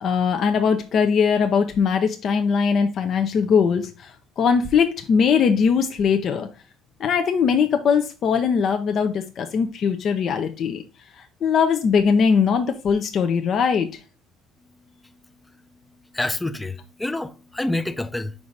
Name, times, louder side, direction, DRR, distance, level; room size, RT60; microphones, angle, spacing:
voice 1, 0.0-6.5 7.0-10.8 11.2-13.9, left 6 dB, 50° left, 0.7 m, -20 dB
voice 2, 16.1-18.3, left 2 dB, 10° left, 0.6 m, -27 dB
5.0 x 4.8 x 4.0 m
cardioid pair, 100°, 0 cm